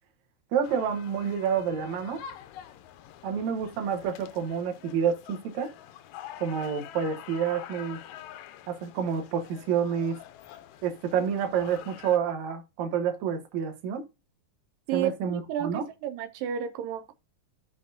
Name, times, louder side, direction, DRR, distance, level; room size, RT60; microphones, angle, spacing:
voice 1, 0.5-2.2 3.2-5.7 6.4-8.0 8.7-10.2 10.8-14.1 14.9-15.8, right 7 dB, 65° right, 2.4 m, -28 dB
sound 1, 0.6-12.2, left 10 dB, 75° left, 1.7 m, -46 dB
voice 2, 14.9-17.1, right 10 dB, 85° right, 2.4 m, -32 dB
12.5 x 5.9 x 2.7 m
omnidirectional pair, 3.8 m